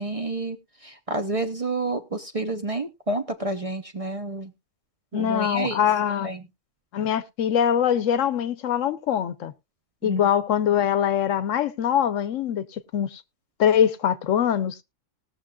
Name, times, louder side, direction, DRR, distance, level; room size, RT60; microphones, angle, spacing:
voice 1, 0.0-4.5 5.1-5.8 6.2-6.5 10.0-10.2, right 2 dB, 30° right, 0.8 m, -29 dB
voice 2, 5.1-6.3 6.9-9.5 10.0-13.2 13.6-14.8, left 9 dB, 75° left, 1.0 m, -23 dB
19.5 x 6.6 x 2.3 m
omnidirectional pair, 1.4 m